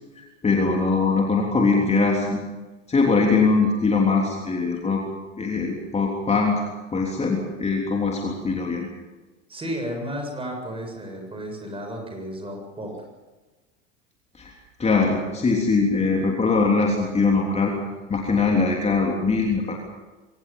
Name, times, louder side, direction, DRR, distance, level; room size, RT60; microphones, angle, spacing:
voice 1, 0.2-2.4 2.9-5.0 5.4-8.9 14.3-17.8 18.1-19.8, left 4 dB, 15° left, 0 dB, 3.5 m, -22 dB
voice 2, 9.5-12.9, equal, 15° right, 3 dB, 7.4 m, -33 dB
24.0 x 19.0 x 7.5 m, 1.2 s
figure-of-eight pair, 80°, 38 cm